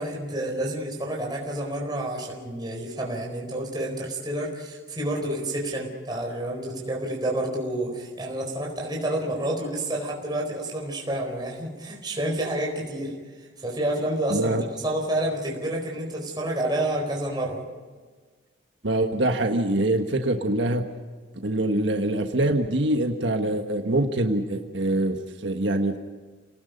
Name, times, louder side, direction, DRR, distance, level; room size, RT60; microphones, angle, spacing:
voice 1, 0.0-17.6, right 1 dB, 25° right, -1 dB, 4.5 m, -29 dB
voice 2, 14.3-14.6 18.8-20.8 21.4-26.0, right 1 dB, 75° right, 4 dB, 1.5 m, -24 dB
30.0 x 19.5 x 5.3 m, 1.4 s
head